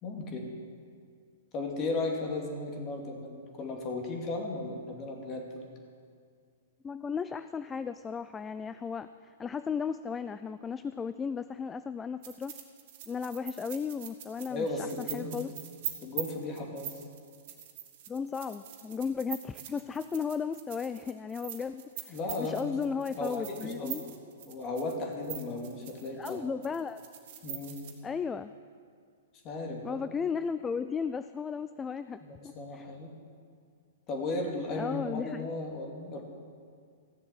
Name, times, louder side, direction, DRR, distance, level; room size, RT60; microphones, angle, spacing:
voice 1, 0.0-0.5 1.5-5.7 14.5-15.4 16.0-16.9 22.1-22.7 23.2-24.0 24.5-26.4 27.4-27.8 29.4-30.0 32.2-33.1 34.1-36.2, left 2 dB, 30° left, 1 dB, 2.6 m, -35 dB
voice 2, 6.8-12.5 13.1-15.5 18.1-24.1 26.2-27.0 28.0-28.5 29.8-32.9 34.8-35.5, left 6 dB, 15° left, 12 dB, 0.3 m, -35 dB
sound 1, 12.2-26.3 26.6-27.9, right 11 dB, 50° right, 1.9 m, -42 dB
15.0 x 7.3 x 7.7 m, 2.1 s
hypercardioid pair, 125°, 0 cm